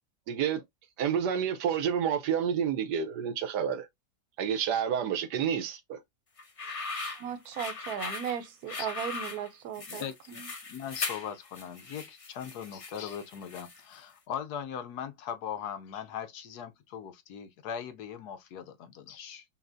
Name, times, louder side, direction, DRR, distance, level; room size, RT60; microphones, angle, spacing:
voice 1, 0.3-0.6 1.0-3.9 4.4-6.0 6.9-7.2, right 8 dB, 85° right, 1.4 m, -29 dB
sound 1, 6.4-13.9, left 4 dB, 55° left, 0.3 m, -39 dB
voice 2, 7.1-10.5, right 9 dB, 70° right, 1.1 m, -37 dB
voice 3, 9.9-10.4 10.7-19.4, left 8 dB, 75° left, 1.3 m, -39 dB
5.7 x 2.5 x 2.6 m
omnidirectional pair, 1.7 m